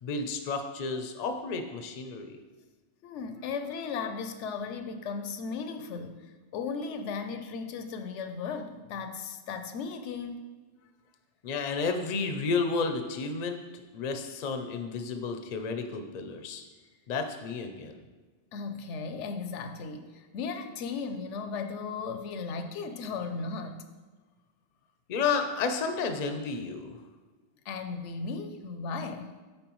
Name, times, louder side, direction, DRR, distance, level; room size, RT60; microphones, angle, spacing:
voice 1, 0.0-2.4 11.4-16.6 17.1-18.0 25.1-27.0, left 4 dB, 50° left, 6 dB, 0.5 m, -32 dB
voice 2, 3.0-10.4 18.5-23.9 27.7-29.4, left 5 dB, 80° left, 7 dB, 0.9 m, -36 dB
8.7 x 4.4 x 3.0 m, 1.4 s
omnidirectional pair, 1.2 m